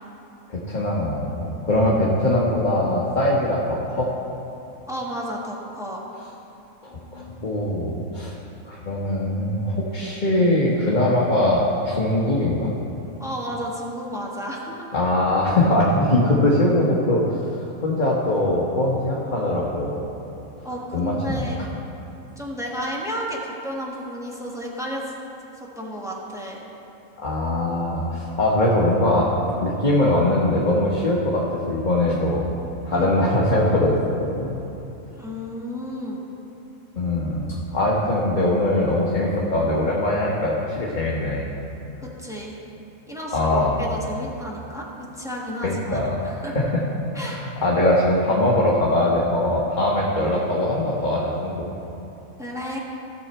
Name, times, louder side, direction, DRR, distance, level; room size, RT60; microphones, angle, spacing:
voice 1, 0.5-4.1 6.8-8.3 8.6-12.7 14.9-17.2 17.8-20.0 20.9-21.5 27.2-32.6 32.8-34.6 37.0-41.5 43.3-43.8 45.6-46.8 47.1-51.6, left 1 dB, 35° left, -5 dB, 1.3 m, -22 dB
voice 2, 4.9-6.0 13.2-14.8 20.6-21.6 22.4-25.1 25.8-26.6 32.9-33.2 35.2-36.2 42.0-42.6 43.1-46.5 47.1-47.4 52.4-52.8, equal, ahead, -3 dB, 1.4 m, -32 dB
16.5 x 6.8 x 4.4 m, 2.9 s
omnidirectional pair, 1.5 m